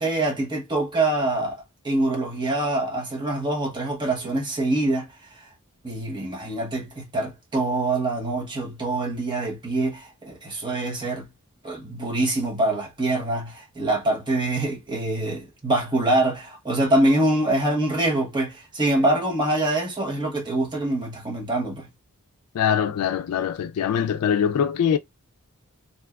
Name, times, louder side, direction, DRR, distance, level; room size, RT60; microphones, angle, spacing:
voice 1, 0.0-5.1 5.8-11.3 11.6-21.9, right 2 dB, 20° right, 0.9 m, -25 dB
voice 2, 22.5-25.0, left 8 dB, 80° left, 0.3 m, -23 dB
3.3 x 2.6 x 2.3 m
head